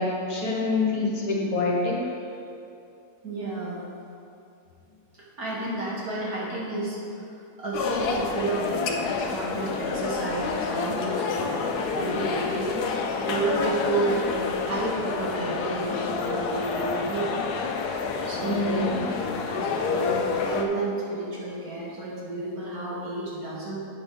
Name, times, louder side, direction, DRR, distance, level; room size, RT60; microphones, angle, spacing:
voice 1, 0.0-2.0 18.4-19.0, left 3 dB, 65° left, -3 dB, 1.8 m, -26 dB
voice 2, 3.2-3.9 5.1-12.7 13.2-14.3 14.6-17.3 18.3-18.8 19.5-23.8, right 2 dB, 70° right, -7 dB, 2.5 m, -31 dB
sound 1, 7.7-20.6, left 4 dB, 80° left, 1.2 m, -28 dB
8.5 x 5.2 x 6.1 m, 2.6 s
omnidirectional pair, 1.7 m